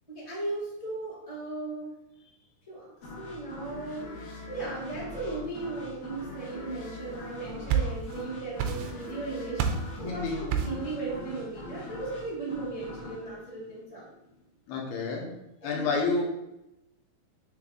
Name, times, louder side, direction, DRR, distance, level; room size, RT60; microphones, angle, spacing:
voice 1, 0.1-2.0 2.7-14.1 15.6-16.0, right 3 dB, 20° right, -8 dB, 1.0 m, -37 dB
sound 1, 3.0-14.5, left 2 dB, 65° left, 3.0 m, -42 dB
sound 2, 7.3-8.2 8.6-9.2 9.6-9.9 10.5-10.9, right 7 dB, 90° right, 2.6 m, -29 dB
voice 2, 10.0-10.4 14.7-15.3 15.6-16.3, left 4 dB, 85° left, -1 dB, 3.1 m, -29 dB
7.6 x 3.6 x 3.8 m, 0.89 s
omnidirectional pair, 4.5 m